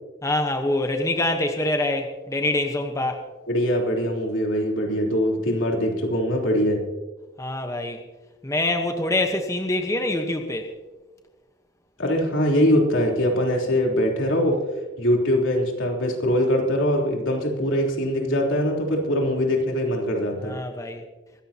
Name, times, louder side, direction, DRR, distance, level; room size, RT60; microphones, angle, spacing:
voice 1, 0.2-3.2 7.4-8.0 8.4-10.7 20.4-21.0, left 1 dB, 15° left, 4 dB, 1.1 m, -25 dB
voice 2, 3.5-6.8 12.0-14.6 15.0-20.6, equal, 85° left, 0 dB, 3.6 m, -22 dB
24.5 x 14.0 x 2.9 m, 1.2 s
head